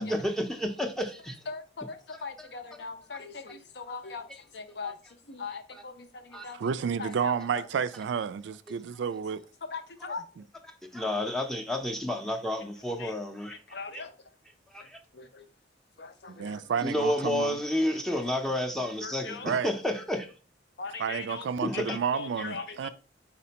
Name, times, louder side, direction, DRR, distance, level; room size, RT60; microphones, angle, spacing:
voice 1, 0.0-1.4 2.1-2.5 3.1-3.2 4.0-4.1 4.8-4.9 5.7-5.8 6.3-6.5 10.0-10.2 10.6-13.6 13.9-14.1 14.7-15.0 16.8-20.3 21.6-22.0, left 1 dB, 5° left, 0.5 m, -31 dB
voice 2, 1.5-4.2 4.5-4.9 5.3-5.9 6.4-6.6 7.0-7.3 9.7-10.2 13.0-13.1 13.7-14.1 15.2-15.4 16.0-16.6 19.0-19.5 20.8-21.4 21.7-22.9, left 4 dB, 60° left, 0.6 m, -39 dB
voice 3, 6.5-9.4 10.4-10.5 16.3-17.6 19.4-19.7 21.0-22.9, right 7 dB, 70° right, 0.3 m, -31 dB
4.2 x 4.2 x 2.8 m
head